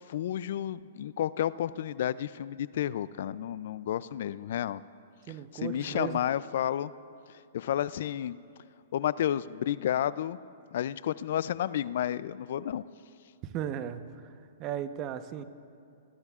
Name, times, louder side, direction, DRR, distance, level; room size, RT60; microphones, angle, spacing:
voice 1, 0.1-4.8 5.3-6.9 7.3-8.4 8.9-10.4 10.7-12.8, left 11 dB, 65° left, 18 dB, 0.4 m, -31 dB
voice 2, 5.3-6.3 13.4-14.0 14.6-15.4, right 10 dB, 35° right, 10 dB, 0.9 m, -36 dB
29.0 x 20.5 x 2.5 m, 2.5 s
hypercardioid pair, 130°, 0 cm